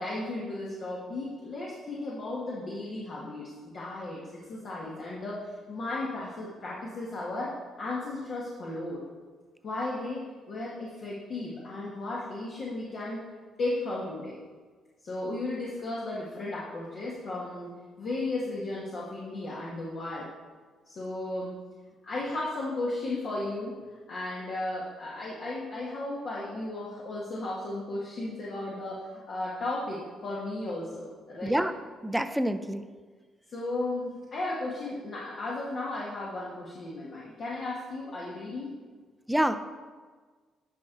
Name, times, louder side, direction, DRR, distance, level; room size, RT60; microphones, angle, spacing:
voice 1, 0.0-9.0 9.6-13.2 13.6-14.4 15.0-20.3 20.8-21.6 22.0-31.6 33.5-38.7, left 2 dB, 55° left, -6 dB, 1.5 m, -35 dB
voice 2, 31.4-31.7 32.0-32.8 39.3-39.6, right 1 dB, 5° right, 9 dB, 0.5 m, -26 dB
11.0 x 4.7 x 3.8 m, 1.4 s
cardioid pair, 90°, 0 cm